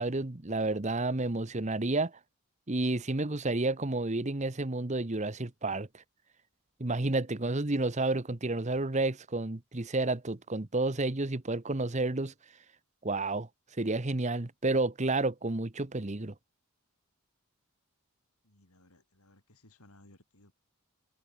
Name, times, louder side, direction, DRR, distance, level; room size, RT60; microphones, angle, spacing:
voice 1, 0.0-2.1 2.7-5.9 6.8-12.3 13.0-13.5 13.8-16.3, right 2 dB, 30° right, 1.0 m, -30 dB
voice 2, 18.4-20.5, left 1 dB, 80° left, 7.0 m, -60 dB
head